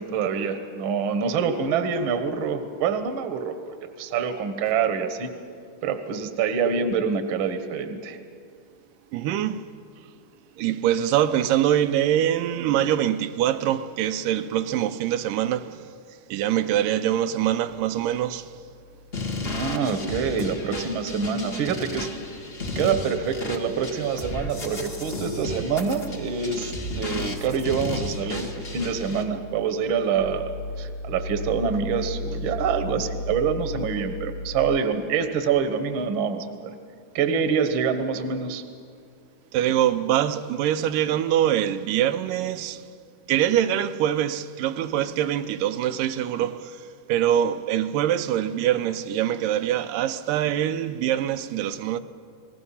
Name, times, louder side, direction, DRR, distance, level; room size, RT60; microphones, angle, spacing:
voice 1, 0.0-5.3 5.8-8.2 19.4-22.1 22.7-36.7 37.1-38.6, right 6 dB, 55° right, 1.5 m, -26 dB
voice 2, 9.1-9.6 10.6-15.8 16.3-18.5 39.5-42.8 43.3-46.8 47.1-52.0, right 11 dB, 85° right, 2.4 m, -24 dB
sound 1, 17.7-34.8, left 2 dB, 65° left, 1.4 m, -38 dB
sound 2, 19.1-29.2, left 2 dB, 40° left, 0.8 m, -33 dB
29.5 x 19.0 x 5.6 m
omnidirectional pair, 3.8 m